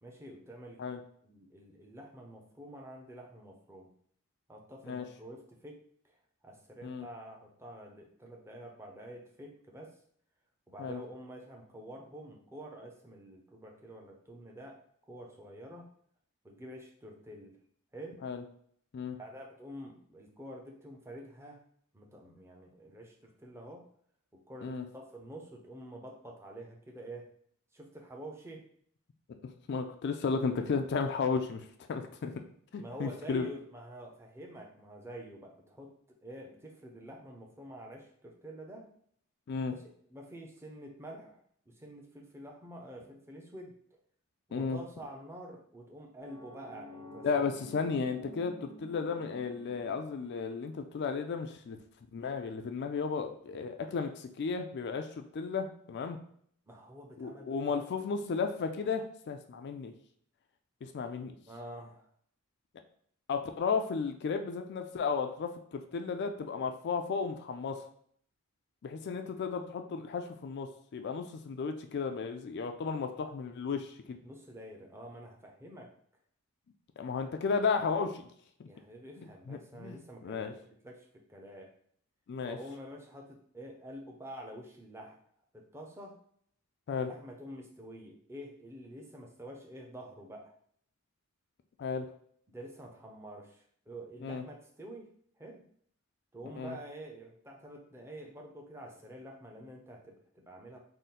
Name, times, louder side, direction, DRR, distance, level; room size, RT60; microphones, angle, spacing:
voice 1, 0.0-0.8 1.2-3.9 4.5-5.8 6.4-10.0 10.7-14.8 15.1-15.9 16.4-17.6 17.9-18.2 19.2-21.6 21.9-23.8 24.3-27.3 27.7-28.6 32.8-35.9 36.2-38.9 39.7-43.7 44.5-47.3 56.7-57.8 61.5-62.1 74.2-75.9 78.7-81.7 82.4-85.2 85.5-86.2 86.9-90.5 92.5-95.1 95.4-95.6 96.3-100.8, right 1 dB, 10° right, 0 dB, 0.5 m, -48 dB
voice 2, 29.7-32.4 32.7-33.5 39.5-39.7 44.5-44.8 47.2-51.8 52.1-56.2 57.2-59.9 60.8-61.4 63.3-67.8 68.8-74.2 77.0-78.3 78.6-78.7 79.2-80.5 82.3-82.6 86.9-87.1 91.8-92.1 94.2-94.4 96.6-96.8, left 5 dB, 50° left, 6 dB, 0.3 m, -34 dB
sound 1, 46.2-51.0, left 1 dB, 90° right, 0.9 m, -50 dB
3.7 x 2.1 x 4.1 m, 0.62 s
head